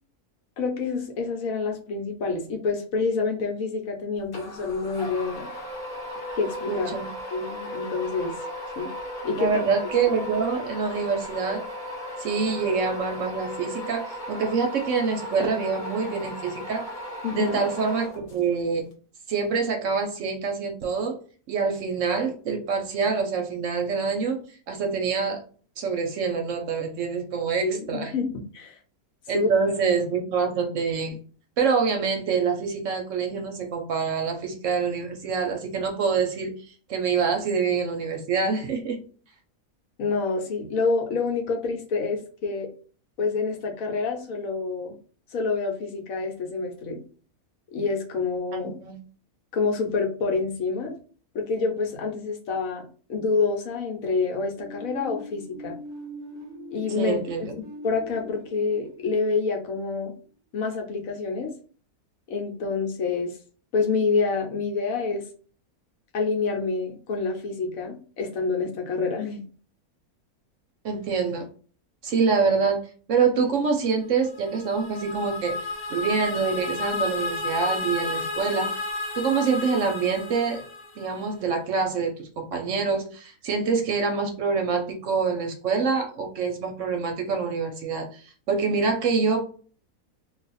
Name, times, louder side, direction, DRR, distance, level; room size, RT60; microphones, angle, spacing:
voice 1, 0.6-5.5 6.3-6.9 7.3-8.3 8.8-8.9 9.2-9.5 17.2-17.6 27.6-28.8 29.3-29.5 40.0-42.7 43.2-44.9 45.3-47.0 47.7-48.7 49.5-50.9 51.3-55.8 56.7-57.2 57.8-60.1 60.5-61.5 62.3-63.4 63.7-65.2 66.1-69.4, left 4 dB, 70° left, 2 dB, 1.1 m, -27 dB
sound 1, 4.3-18.6, equal, 40° left, 0.8 m, -36 dB
voice 2, 6.7-7.1 9.4-11.6 12.2-16.9 17.3-18.8 19.3-21.2 21.5-25.4 25.8-28.1 29.3-31.2 31.6-36.5 36.9-39.0 48.5-49.0 56.9-57.5 70.8-71.5 72.0-72.8 73.1-75.6 75.9-78.7 79.2-80.6 81.0-89.4, right 5 dB, 65° right, 4 dB, 0.9 m, -26 dB
sound 2, 54.5-60.2, equal, 25° right, 0.4 m, -42 dB
sound 3, 74.2-81.4, left 2 dB, 90° left, 1.2 m, -32 dB
2.5 x 2.4 x 4.0 m, 0.41 s
omnidirectional pair, 1.6 m